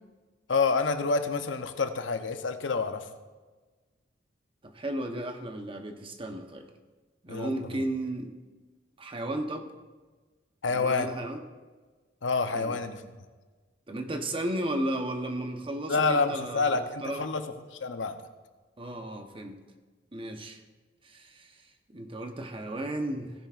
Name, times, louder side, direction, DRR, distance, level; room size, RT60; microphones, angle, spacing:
voice 1, 0.5-3.0 7.3-7.8 10.6-11.1 12.2-13.0 15.9-17.5 17.7-18.2, left 4 dB, 80° left, 8 dB, 0.8 m, -28 dB
voice 2, 4.6-6.7 7.2-8.4 9.0-9.7 10.7-11.4 12.5-12.8 13.9-17.2 18.8-19.6 20.1-20.6 21.0-21.5 21.9-23.3, right 1 dB, 30° right, 5 dB, 1.0 m, -34 dB
16.5 x 10.5 x 2.5 m, 1.3 s
head